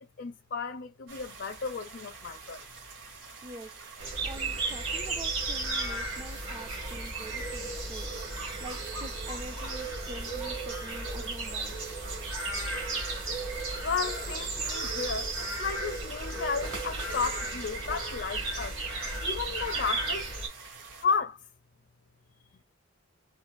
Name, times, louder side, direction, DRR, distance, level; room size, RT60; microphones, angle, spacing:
voice 1, 0.2-2.7 13.8-18.8 19.2-20.3 21.0-21.4, left 5 dB, 60° left, 0.5 m, -33 dB
sound 1, 1.1-21.0, right 4 dB, 65° right, 1.5 m, -48 dB
voice 2, 3.4-3.8 4.2-11.9, right 1 dB, 25° right, 0.5 m, -45 dB
sound 2, 4.0-20.5, right 3 dB, 85° right, 2.1 m, -34 dB
sound 3, 6.1-15.9 18.6-18.7, right 5 dB, 45° right, 1.8 m, -54 dB
4.4 x 2.2 x 2.5 m
head